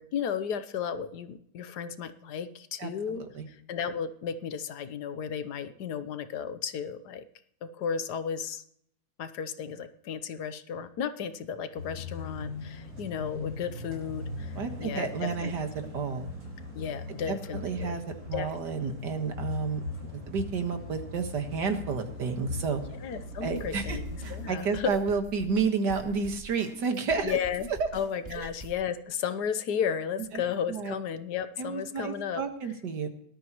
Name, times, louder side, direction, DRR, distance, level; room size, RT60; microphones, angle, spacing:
voice 1, 0.0-7.2 7.6-8.6 9.2-15.5 16.7-18.0 18.3-18.5 18.7-18.9 23.0-24.9 27.2-27.7 27.9-32.4, left 7 dB, 75° left, 12 dB, 1.4 m, -34 dB
voice 2, 2.8-3.5 14.6-15.7 15.9-16.3 17.3-18.0 18.3-22.8 23.4-27.4 27.8-27.9 28.4-28.5 30.3-30.4 30.7-31.0 31.6-33.1, right 5 dB, 85° right, 6 dB, 2.1 m, -31 dB
sound 1, 11.8-24.6, left 2 dB, 60° right, 5.0 m, -39 dB
sound 2, 23.6-28.7, right 3 dB, 25° right, 3.3 m, -45 dB
18.5 x 12.5 x 3.1 m, 0.67 s
omnidirectional pair, 1.8 m